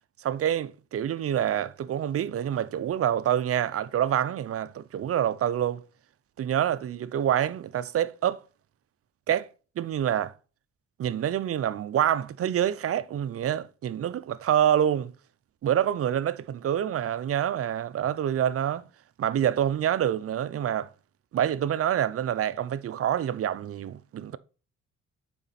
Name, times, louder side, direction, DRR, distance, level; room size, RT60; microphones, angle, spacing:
voice 1, 0.2-5.8 6.4-8.4 9.3-9.5 9.8-10.3 11.0-15.1 15.6-18.9 19.2-20.9 21.3-24.4, right 10 dB, 50° right, 0.6 m, -27 dB
7.3 x 5.0 x 4.0 m
cardioid pair, 90°, 30 cm